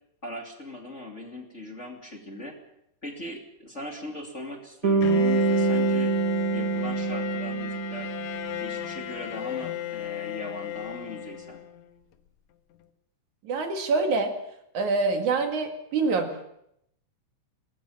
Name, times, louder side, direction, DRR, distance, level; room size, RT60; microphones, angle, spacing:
voice 1, 0.2-2.6 3.0-6.1 6.5-8.1 8.6-11.6, left 1 dB, 25° left, 2 dB, 2.6 m, -39 dB
Bass guitar, 4.8-8.9, right 5 dB, 45° right, 1.2 m, -26 dB
Bowed string instrument, 5.0-11.9, left 12 dB, 70° left, 2.4 m, -34 dB
voice 2, 13.4-14.4 14.7-16.5, right 3 dB, 70° right, 5 dB, 3.6 m, -26 dB
23.0 x 19.5 x 7.4 m, 0.77 s
omnidirectional pair, 3.6 m